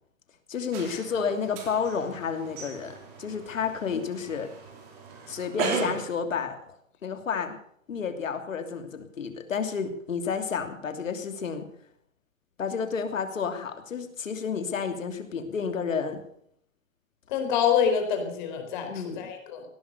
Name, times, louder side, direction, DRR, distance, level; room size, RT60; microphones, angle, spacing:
voice 1, 0.5-4.5 5.3-6.8 7.0-7.6 7.9-11.7 12.6-16.2 18.8-19.3, left 6 dB, 75° left, 7 dB, 3.0 m, -31 dB
sound 1, 0.7-6.1, right 4 dB, 30° right, 3.4 m, -36 dB
voice 2, 17.3-19.6, left 7 dB, 35° left, 5 dB, 4.2 m, -26 dB
17.5 x 11.0 x 6.8 m, 0.68 s
hypercardioid pair, 150°, 40 cm